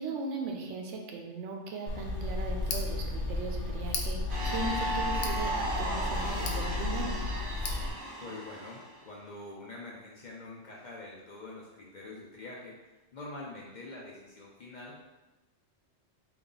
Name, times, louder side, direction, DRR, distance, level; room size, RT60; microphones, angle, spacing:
voice 1, 0.0-7.2, right 3 dB, 75° right, 1 dB, 0.9 m, -38 dB
Tick, 1.9-7.9, left 3 dB, 80° left, 0.9 m, -33 dB
sound 1, 4.3-9.0, right 1 dB, 45° right, 1.3 m, -35 dB
voice 2, 8.2-15.0, left 2 dB, 50° left, -4 dB, 0.6 m, -45 dB
3.8 x 2.3 x 3.8 m, 1.1 s
omnidirectional pair, 1.2 m